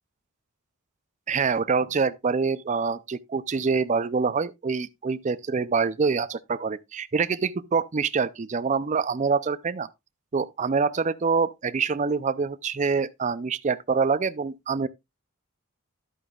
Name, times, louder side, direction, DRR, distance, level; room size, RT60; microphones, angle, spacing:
voice 1, 1.3-9.9 10.3-14.9, right 5 dB, 35° right, 0.4 m, -25 dB
11.0 x 8.7 x 2.3 m
head